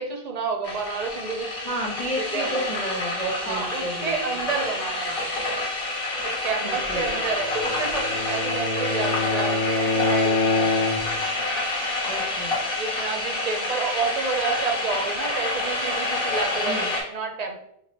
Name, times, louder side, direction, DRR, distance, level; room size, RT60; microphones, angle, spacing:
voice 1, 0.0-1.7 2.3-2.7 3.4-5.3 6.2-10.9 12.7-17.5, right 4 dB, 55° right, 3 dB, 0.5 m, -30 dB
sound 1, 0.6-17.0, left 2 dB, 65° left, 1.2 m, -28 dB
voice 2, 1.6-4.1 6.6-7.1 12.1-12.6 16.6-16.9, right 1 dB, 10° left, -3 dB, 0.6 m, -31 dB
Bowed string instrument, 7.4-11.3, left 4 dB, 85° left, 0.8 m, -26 dB
3.1 x 2.2 x 4.1 m, 0.75 s
omnidirectional pair, 1.0 m